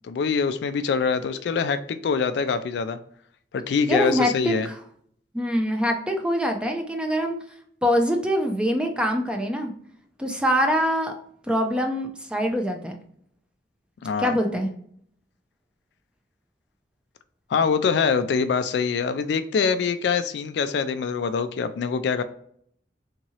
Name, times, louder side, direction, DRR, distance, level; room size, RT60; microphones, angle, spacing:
voice 1, 0.0-3.0 3.5-4.7 14.0-14.4 17.5-22.2, left 5 dB, 65° left, 11 dB, 0.3 m, -24 dB
voice 2, 3.9-4.8 5.3-7.4 7.8-9.7 10.2-11.1 11.5-13.0 14.2-14.7, equal, 5° right, 3 dB, 0.5 m, -24 dB
3.6 x 3.0 x 2.8 m, 0.64 s
head